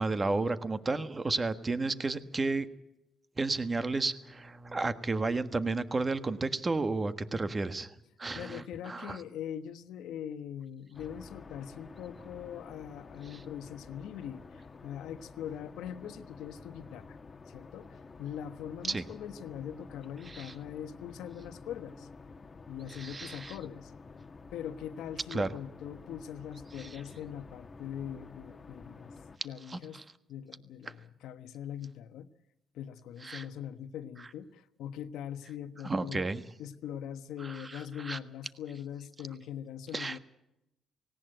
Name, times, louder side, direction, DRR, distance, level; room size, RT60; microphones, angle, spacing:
voice 1, 0.0-2.7 3.4-7.9 8.2-9.2 13.3-13.4 18.9-19.0 20.3-20.5 22.9-23.5 25.3-25.5 26.8-27.0 29.7-29.8 33.2-33.4 35.8-36.4 37.4-38.2 39.9-40.2, right 3 dB, 25° right, 11 dB, 1.5 m, -32 dB
voice 2, 8.3-17.2 17.5-22.1 22.7-23.9 24.5-29.1 29.4-30.0 30.3-32.3 32.7-36.3 36.6-40.2, left 9 dB, 85° left, 10 dB, 1.2 m, -42 dB
sound 1, 10.9-29.4, left 4 dB, 30° left, 1.4 m, -50 dB
18.5 x 18.0 x 9.0 m, 0.86 s
cardioid pair, 90°, 0 cm